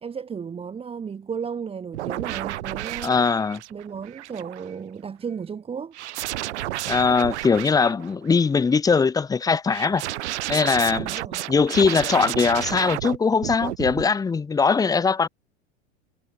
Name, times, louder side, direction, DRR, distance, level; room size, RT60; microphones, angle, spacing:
voice 1, 0.0-3.2 3.7-5.9 11.0-11.4, right 6 dB, 15° right, 1.0 m, -34 dB
sound 1, 1.9-4.7 5.9-8.3 9.7-13.2 13.4-14.1, right 15 dB, 75° right, 0.5 m, -32 dB
voice 2, 3.0-3.6 6.9-10.0 10.5-11.1 11.5-15.3, left 5 dB, 10° left, 0.6 m, -21 dB
hypercardioid pair, 90°, 35 cm